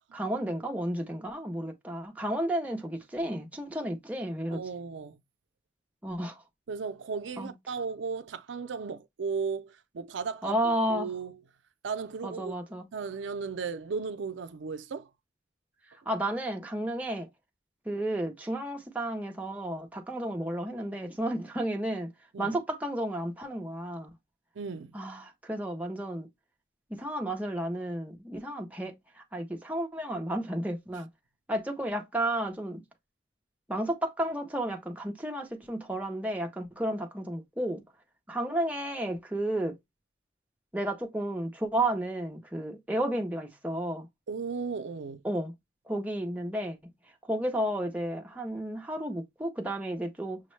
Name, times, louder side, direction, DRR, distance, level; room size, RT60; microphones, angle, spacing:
voice 1, 0.1-4.6 6.0-6.4 7.4-7.5 10.4-11.1 12.2-12.9 16.1-17.3 17.9-22.1 22.4-24.1 24.9-26.3 26.9-31.1 31.5-32.8 33.7-37.8 38.3-39.8 40.7-44.1 45.2-45.5 45.9-46.8 47.3-50.4, right 1 dB, 10° right, 0.5 m, -32 dB
voice 2, 4.5-5.2 6.7-11.4 11.8-12.6 12.9-15.1 22.3-22.6 24.6-24.9 44.3-45.2, right 5 dB, 80° right, 0.4 m, -35 dB
6.1 x 2.1 x 3.1 m
head